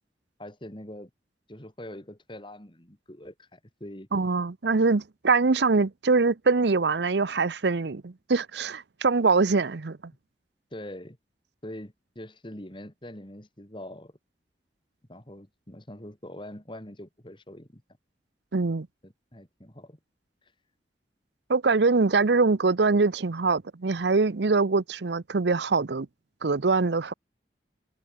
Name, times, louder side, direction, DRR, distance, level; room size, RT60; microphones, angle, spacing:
voice 1, 0.4-1.1 1.5-4.1 10.7-11.2 11.6-14.2 15.1-17.8 19.0-20.0 20.4-20.5, left 1 dB, 30° left, 3.2 m, -43 dB
voice 2, 4.1-10.0 18.5-18.9 21.5-26.1 26.4-27.1, right 4 dB, 75° right, 0.7 m, -23 dB
head